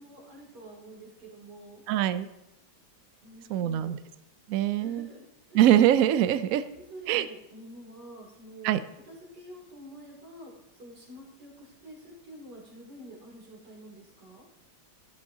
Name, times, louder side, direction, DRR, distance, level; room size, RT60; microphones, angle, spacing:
voice 1, 0.0-1.8 3.2-3.9 4.8-5.2 5.5-5.6 6.7-14.5, right 1 dB, 60° right, -3 dB, 3.5 m, -48 dB
voice 2, 1.9-2.3 3.5-4.0 4.5-5.1 5.5-6.6 7.1-7.3 8.6-8.8, right 11 dB, 90° right, 12 dB, 0.7 m, -23 dB
12.5 x 11.5 x 2.8 m, 0.89 s
omnidirectional pair, 2.1 m